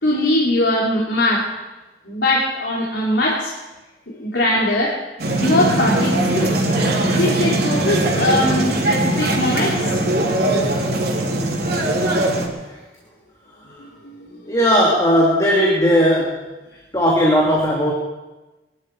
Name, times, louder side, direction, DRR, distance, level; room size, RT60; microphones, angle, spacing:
voice 1, 0.0-1.5 2.1-3.5 4.2-5.0 5.4-6.6 7.0-10.0 13.8-14.4, left 1 dB, 80° left, -4 dB, 3.4 m, -21 dB
sound 1, 5.2-12.5, right 1 dB, 60° right, 3.6 m, -20 dB
voice 2, 14.5-16.4 16.9-17.9, equal, 20° left, -4 dB, 2.9 m, -16 dB
24.0 x 12.0 x 4.9 m, 1.1 s
head